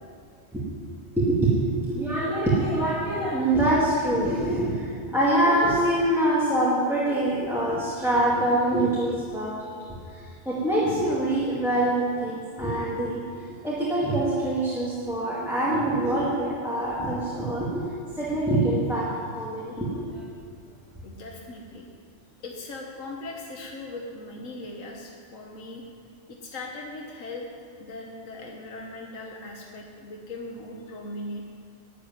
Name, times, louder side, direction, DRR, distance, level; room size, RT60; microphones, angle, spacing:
voice 1, 1.2-17.8 18.1-19.1 19.4-20.3, right 1 dB, ahead, -8 dB, 2.1 m, -25 dB
voice 2, 21.0-21.9 22.4-25.8 26.3-27.5 27.8-31.4, left 2 dB, 85° left, 0 dB, 1.6 m, -39 dB
11.5 x 8.5 x 9.3 m, 2.2 s
omnidirectional pair, 1.3 m